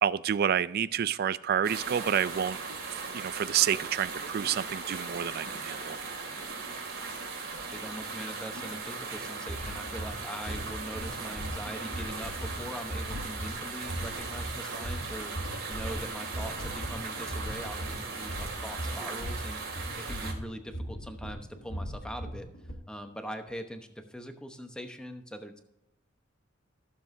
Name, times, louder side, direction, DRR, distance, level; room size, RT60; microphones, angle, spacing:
voice 1, 0.0-2.6 2.9-6.0, right 9 dB, 50° right, 17 dB, 0.3 m, -29 dB
sound 1, 1.6-20.3, right 4 dB, 70° right, 2.3 m, -38 dB
voice 2, 7.7-22.5 22.9-25.6, equal, 5° left, 6 dB, 0.9 m, -42 dB
sound 2, 9.3-22.7, equal, 60° left, 2.0 m, -39 dB
15.0 x 7.1 x 2.7 m, 0.87 s
head